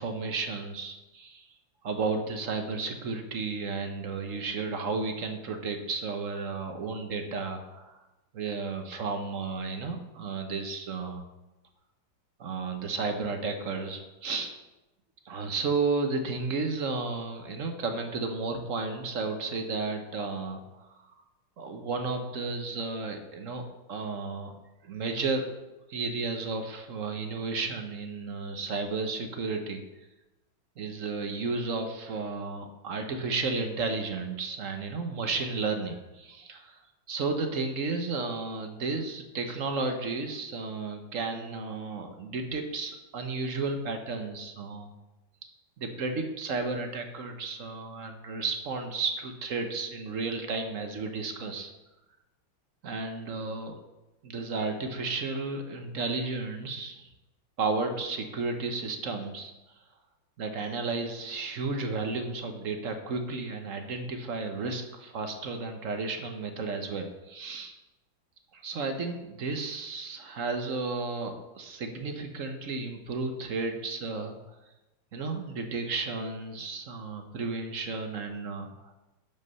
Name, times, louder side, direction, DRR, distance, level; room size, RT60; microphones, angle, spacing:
voice 1, 0.0-1.5 1.8-7.9 8.3-11.2 12.4-14.5 15.2-20.9 21.6-24.5 24.8-25.5 25.9-29.9 30.8-36.8 37.1-44.9 45.8-51.7 52.8-53.8 54.2-57.1 57.6-59.5 60.4-67.7 68.5-74.4 75.1-78.9, right 3 dB, 55° right, 5 dB, 1.0 m, -33 dB
12.0 x 5.7 x 5.4 m, 1.0 s
omnidirectional pair, 2.3 m